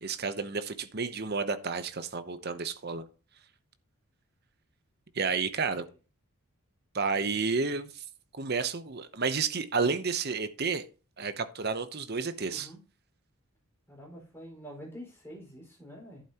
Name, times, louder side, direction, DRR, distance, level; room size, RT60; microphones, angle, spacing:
voice 1, 0.0-3.0 5.1-5.8 6.9-8.0 8.3-10.8 11.2-12.7, right 4 dB, 45° right, 0.8 m, -31 dB
voice 2, 12.4-12.8 13.9-16.2, equal, 10° left, 5.0 m, -46 dB
11.5 x 8.9 x 2.9 m
head